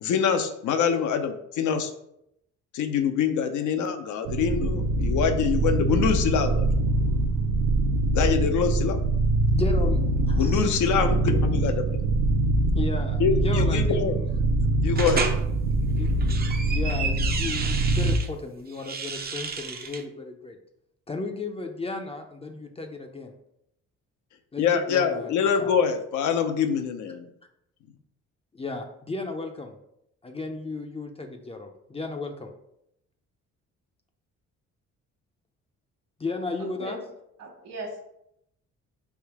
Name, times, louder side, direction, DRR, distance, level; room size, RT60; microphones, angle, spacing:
voice 1, 0.0-1.9 2.7-6.7 8.1-9.0 10.4-12.0 13.2-14.1 14.8-15.3 24.6-27.3, left 7 dB, 75° left, 7 dB, 0.6 m, -25 dB
sound 1, 4.3-18.2, right 2 dB, 85° right, 0.5 m, -24 dB
voice 2, 9.5-10.0 10.3-10.6 12.8-14.4 16.0-16.1 16.7-20.6 21.1-23.3 24.5-25.3 25.6-25.7 28.5-29.7 30.2-32.5 36.2-37.0, left 3 dB, 20° left, 4 dB, 0.5 m, -34 dB
sound 2, 15.0-15.4 16.1-18.3 18.7-20.0, right 5 dB, 30° right, 0.5 m, -32 dB
voice 3, 36.6-37.0 37.4-38.1, right 1 dB, 60° right, 2 dB, 1.3 m, -38 dB
3.5 x 2.7 x 4.6 m, 0.78 s
cardioid pair, 90°, 30 cm